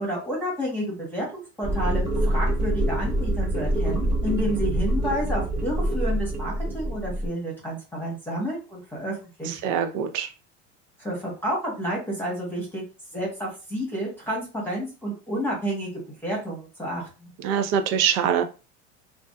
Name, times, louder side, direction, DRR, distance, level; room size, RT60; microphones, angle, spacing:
voice 1, 0.0-9.7 11.0-12.8 13.1-15.9 16.2-17.3, equal, 5° left, -4 dB, 1.0 m, -30 dB
sound 1, 1.6-7.3, right 1 dB, 15° right, 1.2 m, -25 dB
voice 2, 9.6-10.3 17.4-18.4, right 8 dB, 55° right, 7 dB, 0.5 m, -23 dB
2.5 x 2.3 x 2.2 m, 0.32 s
supercardioid pair, 110°, 36 cm